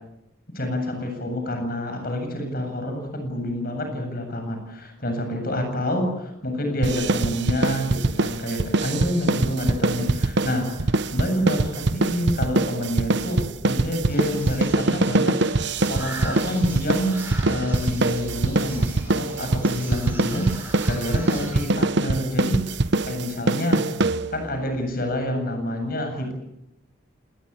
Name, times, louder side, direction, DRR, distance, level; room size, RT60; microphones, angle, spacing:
voice 1, 0.5-17.2 17.5-23.9 24.3-26.3, equal, 50° left, 5 dB, 7.8 m, -28 dB
sound 1, 6.8-24.6, right 2 dB, 60° right, 0.9 m, -23 dB
sound 2, 14.1-21.6, right 1 dB, 10° right, 7.2 m, -39 dB
27.5 x 20.5 x 8.4 m, 0.88 s
head